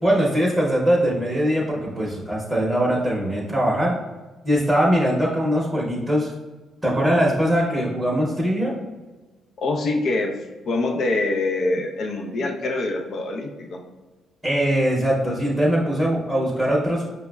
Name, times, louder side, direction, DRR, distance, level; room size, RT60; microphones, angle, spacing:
voice 1, 0.0-4.0 4.4-6.3 6.8-8.7 14.4-17.1, equal, 10° right, -4 dB, 0.8 m, -21 dB
voice 2, 9.6-10.3 10.7-13.8, left 2 dB, 60° left, 2 dB, 0.5 m, -24 dB
5.4 x 2.0 x 2.2 m, 1.2 s
cardioid pair, 90°, 0 cm